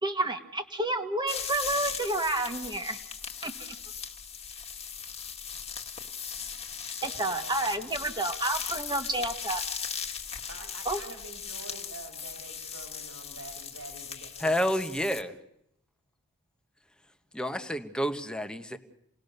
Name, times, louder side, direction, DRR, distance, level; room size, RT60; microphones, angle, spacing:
voice 1, 0.0-3.0 3.4-3.5 7.2-9.6 10.9-11.0, right 2 dB, 20° right, 6 dB, 1.6 m, -30 dB
sound 1, 1.3-15.2, left 7 dB, 30° left, 2.0 m, -38 dB
voice 2, 7.0-7.6 10.5-14.6, right 3 dB, 65° right, 3 dB, 4.1 m, -47 dB
voice 3, 14.4-15.3 17.3-18.8, equal, 5° left, 7 dB, 1.3 m, -29 dB
28.5 x 19.5 x 6.8 m, 0.79 s
head